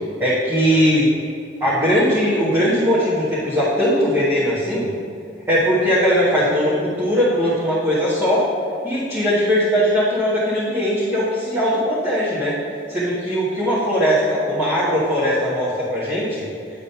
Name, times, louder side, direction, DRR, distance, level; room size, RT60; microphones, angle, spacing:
voice 1, 0.2-1.1 1.6-4.9 5.5-8.5 8.8-12.6 12.9-16.5, equal, 15° right, -12 dB, 1.6 m, -19 dB
10.5 x 3.8 x 6.9 m, 2.5 s
head